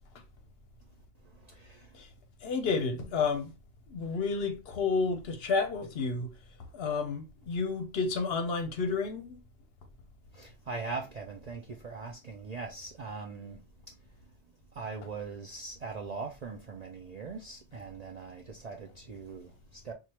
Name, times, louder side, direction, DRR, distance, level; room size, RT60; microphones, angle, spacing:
voice 1, 1.2-2.0 10.3-13.9 14.7-19.9, right 4 dB, 55° right, 0.4 m, -41 dB
voice 2, 2.4-3.5 3.9-6.3 6.7-9.4, left 4 dB, 60° left, 0.8 m, -31 dB
4.6 x 2.4 x 2.8 m
omnidirectional pair, 1.2 m